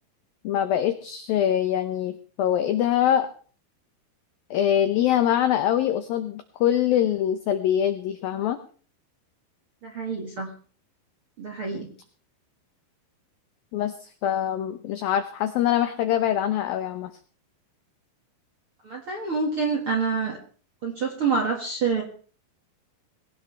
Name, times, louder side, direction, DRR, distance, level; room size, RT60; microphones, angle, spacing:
voice 1, 0.4-3.3 4.5-8.6 13.7-17.1, left 10 dB, 85° left, 9 dB, 2.0 m, -24 dB
voice 2, 9.8-10.5 11.4-11.9 18.8-20.4 20.8-22.0, right 5 dB, 50° right, 0 dB, 1.6 m, -27 dB
21.0 x 17.5 x 3.4 m, 0.42 s
omnidirectional pair, 5.4 m